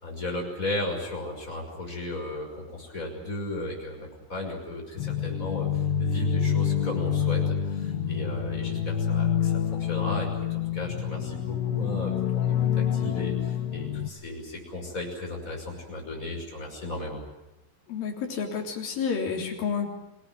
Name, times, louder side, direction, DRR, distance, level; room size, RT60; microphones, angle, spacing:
voice 1, 0.0-5.7 6.0-17.2, left 1 dB, 20° left, 0 dB, 6.2 m, -35 dB
sound 1, 5.0-14.1, left 8 dB, 75° left, 3.3 m, -27 dB
voice 2, 17.9-19.9, left 6 dB, 60° left, 1 dB, 5.1 m, -30 dB
26.0 x 18.5 x 9.2 m, 0.94 s
omnidirectional pair, 4.8 m